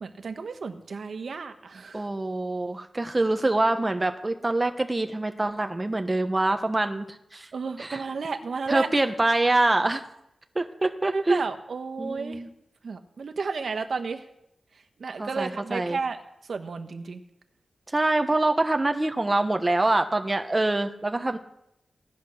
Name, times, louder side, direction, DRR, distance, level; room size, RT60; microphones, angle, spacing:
voice 1, 0.0-2.1 7.5-8.9 11.1-12.4 12.8-14.2 15.0-16.2 16.5-17.2, right 4 dB, 65° right, 7 dB, 1.4 m, -32 dB
voice 2, 1.9-7.1 7.3-7.5 7.8-8.0 8.7-10.0 10.5-11.5 12.0-12.5 15.2-16.0 17.9-21.4, right 2 dB, 20° right, 7 dB, 1.1 m, -25 dB
17.0 x 11.0 x 6.5 m, 0.81 s
wide cardioid pair, 115°, 0 cm